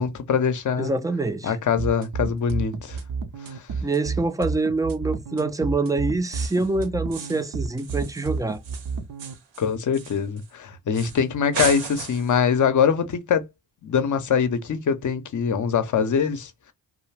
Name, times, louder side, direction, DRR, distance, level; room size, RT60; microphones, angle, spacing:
voice 1, 0.0-0.9 1.4-3.0 3.5-3.6 9.6-13.4 13.8-16.7, left 7 dB, 40° left, 0.7 m, -23 dB
voice 2, 0.8-1.5 3.8-8.6, right 3 dB, 10° right, 0.4 m, -25 dB
sound 1, 1.8-9.3, right 5 dB, 50° right, 0.6 m, -30 dB
sound 2, 6.2-6.7 7.1-7.5 7.8-10.5 10.9-11.2 11.5-12.4, right 6 dB, 80° right, 0.8 m, -35 dB
2.2 x 2.0 x 3.2 m
supercardioid pair, 45°, 45 cm